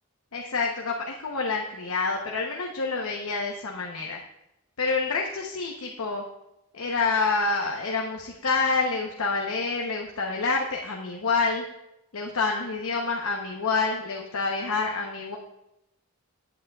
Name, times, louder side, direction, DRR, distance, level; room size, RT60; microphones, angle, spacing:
voice 1, 0.3-4.2 4.8-6.2 6.7-11.6 12.1-15.4, left 4 dB, 85° left, 0 dB, 0.9 m, -27 dB
16.5 x 8.3 x 2.4 m, 0.87 s
head